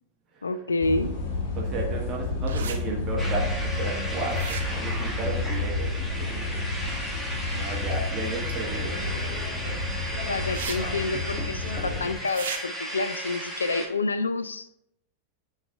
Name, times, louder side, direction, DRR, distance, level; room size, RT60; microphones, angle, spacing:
voice 1, 0.4-1.1 10.3-14.7, left 3 dB, 75° left, 12 dB, 0.3 m, -28 dB
sound 1, 0.8-12.1, left 3 dB, 50° left, 1.1 m, -30 dB
voice 2, 1.5-6.7 7.5-9.8, right 3 dB, 30° right, -2 dB, 1.3 m, -34 dB
sound 2, 2.5-2.8 4.3-4.9 8.5-8.6 10.5-10.8 11.1-11.2 12.3-12.6, right 6 dB, 65° right, 0.8 m, -34 dB
sound 3, 3.2-13.9, equal, 5° left, 1.2 m, -35 dB
9.5 x 3.2 x 3.6 m, 0.78 s
figure-of-eight pair, 90°, 0 cm